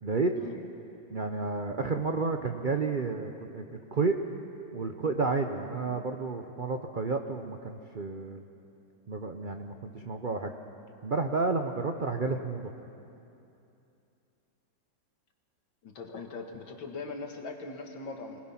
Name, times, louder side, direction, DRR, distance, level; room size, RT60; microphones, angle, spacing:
voice 1, 0.0-0.6 1.1-4.1 4.7-8.4 9.1-10.5 11.0-12.7, right 4 dB, 65° right, 5 dB, 0.5 m, -31 dB
voice 2, 15.8-18.4, left 3 dB, 85° left, 3 dB, 2.5 m, -40 dB
25.0 x 19.5 x 5.8 m, 2.8 s
omnidirectional pair, 2.1 m